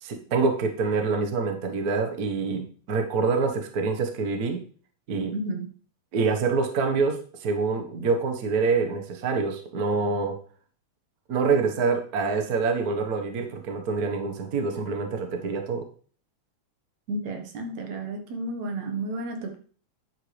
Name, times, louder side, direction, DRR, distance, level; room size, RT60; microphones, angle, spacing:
voice 1, 0.0-4.6 5.1-5.3 6.1-10.4 11.3-15.9, right 4 dB, 45° right, 5 dB, 1.3 m, -26 dB
voice 2, 5.3-5.7 17.1-19.6, right 2 dB, 70° right, 4 dB, 2.8 m, -32 dB
10.5 x 8.1 x 3.3 m, 0.43 s
omnidirectional pair, 3.3 m